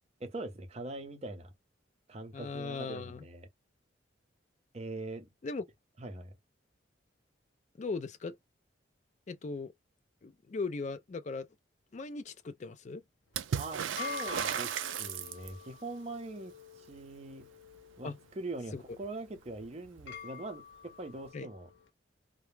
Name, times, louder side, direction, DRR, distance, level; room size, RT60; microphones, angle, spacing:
voice 1, 0.2-1.5 2.1-3.5 4.7-5.3 6.0-6.3 13.6-14.7 15.0-17.5 18.0-21.7, right 2 dB, 35° right, 0.6 m, -42 dB
voice 2, 2.3-3.2 5.4-5.6 7.8-8.4 9.3-9.7 10.2-11.5 11.9-13.0 18.0-18.2 18.7-18.8 21.3-21.5, left 4 dB, 40° left, 0.4 m, -38 dB
sound 1, 13.3-21.8, left 7 dB, 80° left, 0.8 m, -47 dB
Water / Splash splatter, 13.3-15.7 19.0-19.1 19.4-20.2 21.2-21.3, right 8 dB, 85° right, 0.4 m, -35 dB
2.2 x 2.0 x 3.1 m
head